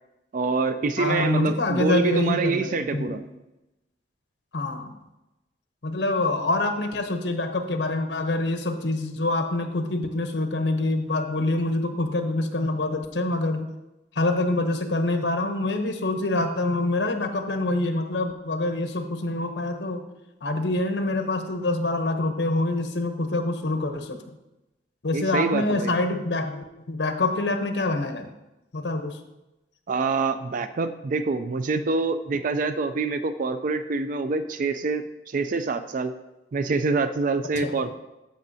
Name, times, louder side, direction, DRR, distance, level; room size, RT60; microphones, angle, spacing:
voice 1, 0.3-3.2 25.1-25.9 29.9-36.1 36.5-37.9, right 4 dB, 50° right, 10 dB, 0.4 m, -26 dB
voice 2, 1.0-3.3 4.5-4.9 5.8-13.7 14.1-20.0 20.4-24.2 25.0-28.3 28.7-29.2 37.6-37.8, left 2 dB, 80° left, 6 dB, 0.8 m, -26 dB
13.5 x 5.2 x 2.7 m, 0.97 s
head